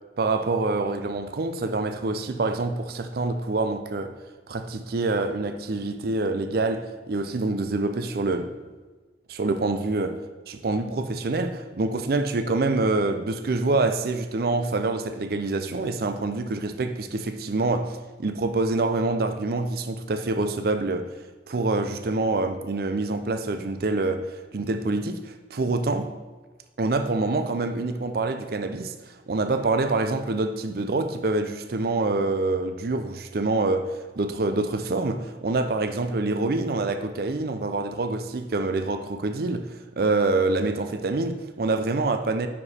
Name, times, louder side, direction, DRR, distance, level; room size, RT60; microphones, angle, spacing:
voice 1, 0.2-4.1 4.5-8.5 9.3-21.1 21.5-26.1 26.8-42.5, right 3 dB, 55° right, 0.5 m, -26 dB
9.9 x 4.9 x 4.2 m
head